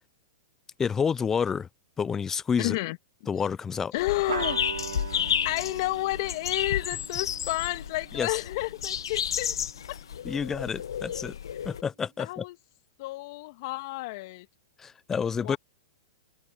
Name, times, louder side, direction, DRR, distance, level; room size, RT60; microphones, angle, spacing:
voice 1, 0.8-1.7 2.0-2.8 3.3-3.9 8.1-8.4 10.2-11.4 11.6-12.4 14.8-15.6, left 6 dB, 15° left, 0.5 m, -29 dB
voice 2, 2.6-3.0 3.9-4.6 5.4-9.6 9.9-10.0 12.2-12.6 13.0-14.5 15.4-15.6, left 21 dB, 50° left, 2.2 m, -31 dB
sound 1, 4.0-11.8, left 9 dB, 70° left, 1.4 m, -32 dB
sound 2, 4.3-9.2, right 8 dB, 75° right, 5.6 m, -40 dB
hypercardioid pair, 110°, 2 cm